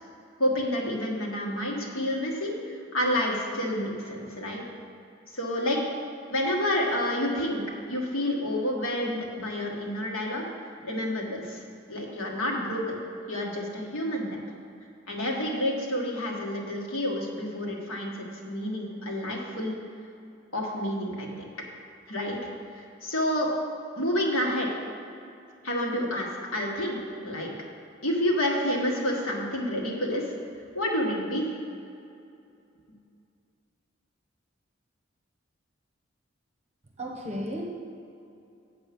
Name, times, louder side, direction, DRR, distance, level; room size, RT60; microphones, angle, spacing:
voice 1, 0.4-4.6 5.3-5.8 6.3-10.4 10.8-11.6 11.9-14.4 15.1-19.8 20.5-21.3 22.1-22.4 22.7-23.5 23.9-24.7 25.6-27.5 28.0-30.3 30.7-31.5, left 1 dB, 85° left, -1 dB, 1.7 m, -29 dB
voice 2, 37.0-37.6, equal, 35° right, 0 dB, 1.1 m, -33 dB
7.8 x 6.9 x 6.0 m, 2.6 s
head